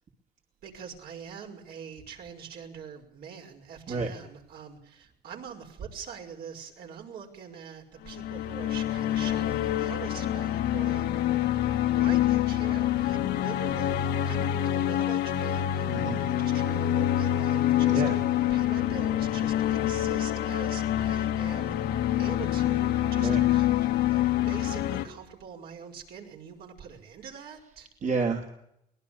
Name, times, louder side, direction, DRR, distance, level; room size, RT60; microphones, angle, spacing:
voice 1, 0.6-11.3 11.9-14.0 14.2-21.7 22.2-23.7 24.1-27.9, right 7 dB, 70° right, 2 dB, 5.8 m, -44 dB
sound 1, 8.1-25.1, left 12 dB, 80° left, 2.1 m, -26 dB
voice 2, 28.0-28.5, right 4 dB, 45° right, 1 dB, 2.9 m, -29 dB
24.0 x 19.5 x 7.0 m, 0.78 s
cardioid pair, 110°, 17 cm